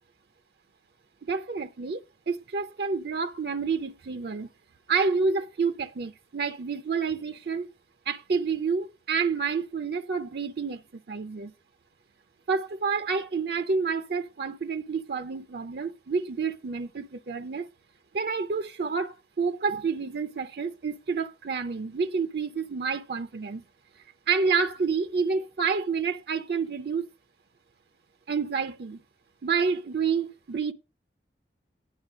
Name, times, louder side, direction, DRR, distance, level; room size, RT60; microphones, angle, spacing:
voice 1, 1.2-2.0 2.3-4.5 4.9-7.7 8.1-10.8 11.1-11.5 12.5-17.7 18.1-23.6 24.3-27.1 28.3-29.0 29.4-30.7, right 5 dB, 60° right, 0.5 m, -29 dB
9.9 x 5.9 x 4.9 m
head